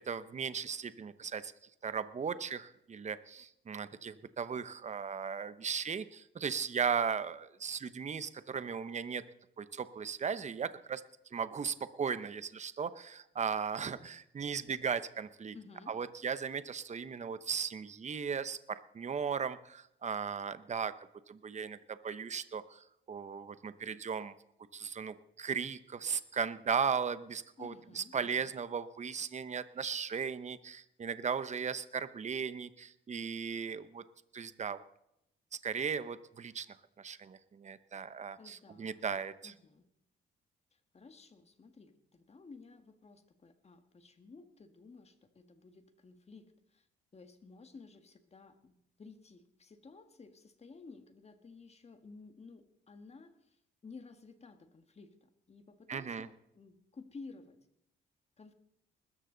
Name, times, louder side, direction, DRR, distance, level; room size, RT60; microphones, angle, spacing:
voice 1, 0.0-1.5 1.8-9.2 9.6-11.0 11.3-15.5 15.9-20.9 21.3-24.3 24.7-34.0 34.3-34.8 35.6-36.7 37.0-39.5 55.9-56.3, right 6 dB, 35° right, 13 dB, 0.9 m, -37 dB
voice 2, 15.5-16.0 27.6-28.5 38.4-39.1 39.4-39.9 40.7-46.9 47.1-57.6 58.4-58.5, left 4 dB, 30° left, 8 dB, 1.8 m, -54 dB
20.5 x 13.5 x 4.0 m, 0.78 s
cardioid pair, 90°, 20 cm